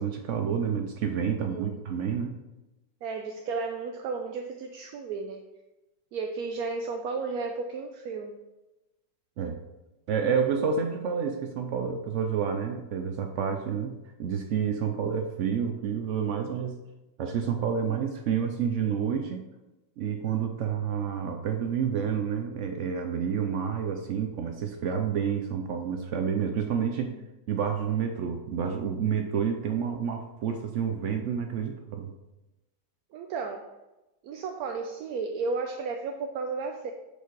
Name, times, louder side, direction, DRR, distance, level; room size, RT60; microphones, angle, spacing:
voice 1, 0.0-2.4 9.4-9.6 10.1-16.8 17.2-19.5 20.0-27.2 27.5-32.1, right 7 dB, 85° right, 5 dB, 0.6 m, -29 dB
voice 2, 1.4-1.8 3.0-5.4 6.1-8.4 33.1-33.7 34.2-36.9, right 4 dB, 70° right, 4 dB, 1.0 m, -33 dB
6.5 x 5.0 x 4.6 m, 1.0 s
omnidirectional pair, 1.9 m